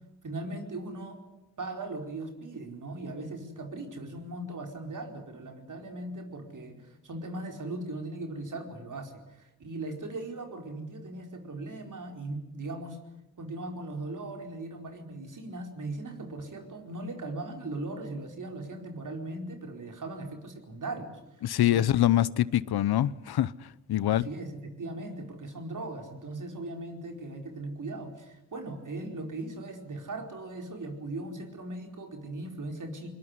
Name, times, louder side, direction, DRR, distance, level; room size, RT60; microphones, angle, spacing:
voice 1, 0.2-1.2 1.6-13.0 13.4-21.2 21.7-21.9 24.1-33.1, right 2 dB, 55° right, 4.7 m, -39 dB
voice 2, 21.4-24.3, left 12 dB, 75° left, 0.9 m, -25 dB
21.5 x 20.5 x 9.7 m
cardioid pair, 60°, 38 cm